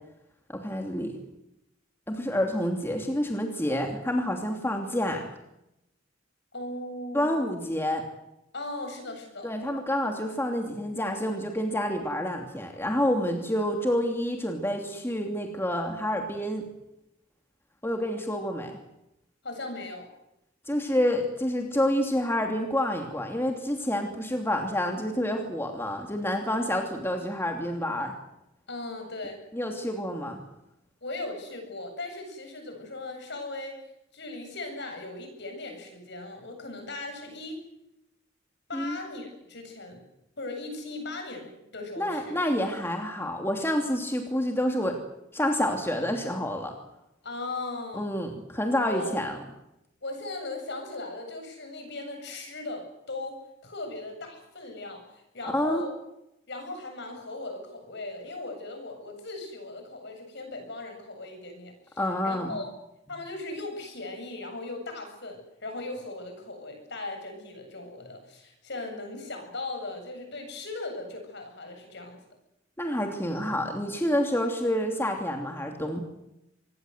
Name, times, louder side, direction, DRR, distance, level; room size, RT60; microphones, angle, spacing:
voice 1, 0.5-1.1 2.1-5.3 7.1-8.0 9.4-16.6 17.8-18.8 20.7-28.1 29.5-30.4 38.7-39.0 42.0-45.0 45.3-46.7 47.9-49.4 55.5-55.9 62.0-62.6 72.8-76.0, equal, 10° left, 3 dB, 2.8 m, -28 dB
voice 2, 6.5-7.5 8.5-9.5 19.4-20.1 28.7-29.4 31.0-33.8 34.1-37.6 38.7-40.0 40.4-42.4 47.2-48.1 48.8-49.1 50.0-55.9 56.5-62.7 63.1-72.2, left 2 dB, 60° left, 5 dB, 7.9 m, -38 dB
25.5 x 20.5 x 8.1 m, 0.87 s
head